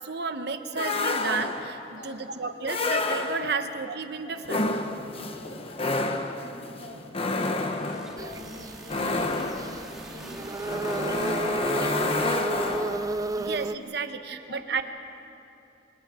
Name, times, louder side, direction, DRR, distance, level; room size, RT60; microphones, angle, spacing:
voice 1, 0.0-4.7 13.3-14.8, right 4 dB, 65° right, 8 dB, 1.1 m, -32 dB
sound 1, 0.8-1.8 2.6-3.7 4.4-13.2, left 2 dB, 35° left, 1.1 m, -29 dB
voice 2, 1.9-2.5 3.5-3.6 4.2-12.8 13.3-13.5 13.8-14.8, left 1 dB, 50° left, -3 dB, 4.2 m, -47 dB
sound 2, 7.5-12.5, right 1 dB, 5° right, 2.0 m, -47 dB
sound 3, 8.2-13.8, right 2 dB, 20° right, 0.5 m, -32 dB
28.5 x 24.5 x 4.4 m, 2.7 s
head